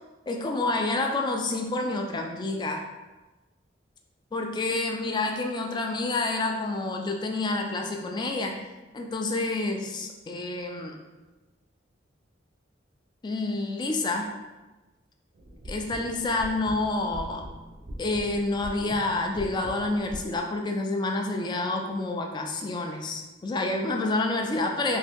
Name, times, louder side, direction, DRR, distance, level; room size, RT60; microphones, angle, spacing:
voice 1, 0.3-2.8 4.3-8.6 8.9-11.0 13.2-14.3 15.7-17.4 18.0-25.0, left 2 dB, 25° left, 3 dB, 0.3 m, -28 dB
sound 1, 15.3-20.4, equal, 45° right, 0.5 m, -42 dB
2.9 x 2.7 x 3.4 m, 1.1 s
head